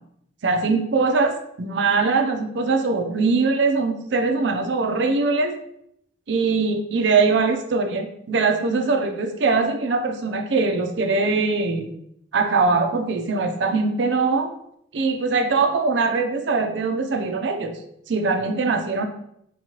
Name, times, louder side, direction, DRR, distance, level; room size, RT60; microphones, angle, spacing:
voice 1, 0.4-1.3 1.6-5.6 6.3-11.9 12.3-14.5 14.9-17.7 18.1-19.0, right 4 dB, 70° right, 5 dB, 0.5 m, -22 dB
4.6 x 3.0 x 2.9 m, 0.74 s
head